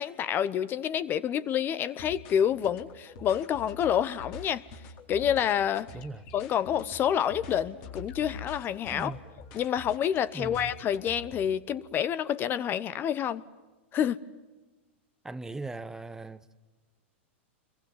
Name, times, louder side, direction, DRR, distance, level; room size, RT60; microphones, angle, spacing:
voice 1, 0.0-4.6 5.1-5.9 6.3-9.1 9.5-13.4 13.9-14.2, left 9 dB, 30° left, 0.9 m, -28 dB
sound 1, 1.9-11.5, left 3 dB, 50° left, 4.2 m, -46 dB
voice 2, 5.9-6.2 8.9-9.2 10.3-10.7 15.2-16.6, right 2 dB, 10° right, 0.9 m, -39 dB
27.0 x 23.0 x 9.4 m
hypercardioid pair, 115°, 7 cm